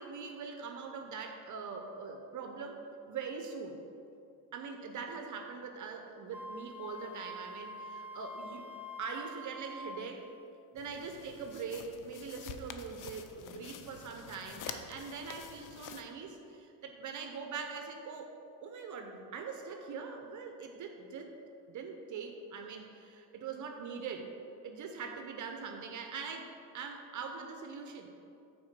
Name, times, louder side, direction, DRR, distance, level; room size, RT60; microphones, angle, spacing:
voice 1, 0.0-2.8 3.1-3.8 4.5-8.7 9.0-10.3 10.7-18.3 18.6-21.3 21.7-24.3 24.6-28.1, right 5 dB, 50° right, 4 dB, 0.7 m, -42 dB
Wind instrument woodwind instrument, 6.3-10.1, equal, 5° right, 0.3 m, -45 dB
sound 1, 10.8-16.0, left 7 dB, 50° left, 0.6 m, -47 dB
6.0 x 4.3 x 5.9 m, 2.7 s
cardioid pair, 105°, 40 cm